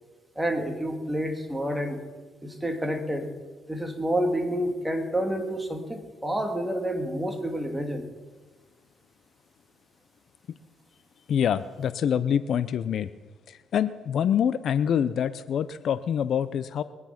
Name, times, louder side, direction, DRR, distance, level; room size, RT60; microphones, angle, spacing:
voice 1, 0.3-2.0 2.4-3.3 3.7-8.1, equal, 10° right, 4 dB, 2.6 m, -29 dB
voice 2, 11.3-13.1 13.5-16.8, left 8 dB, 65° left, 15 dB, 0.6 m, -26 dB
22.5 x 9.6 x 5.9 m, 1.3 s
cardioid pair, 90°, 0 cm